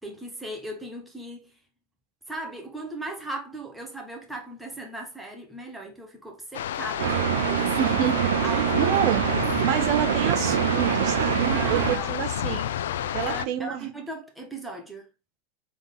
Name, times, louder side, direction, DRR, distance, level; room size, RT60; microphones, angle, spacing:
voice 1, 0.0-1.6 2.3-8.0 8.4-9.4 11.5-12.2 13.2-15.1, right 1 dB, 5° right, 1.1 m, -38 dB
sound 1, 6.5-13.5, left 10 dB, 85° left, 0.3 m, -30 dB
sound 2, 7.0-12.0, right 10 dB, 85° right, 0.5 m, -25 dB
voice 2, 7.8-8.4 8.8-9.2 9.6-12.6 13.1-13.9, right 10 dB, 50° right, 0.8 m, -28 dB
3.9 x 3.7 x 3.6 m
supercardioid pair, 135°, 0 cm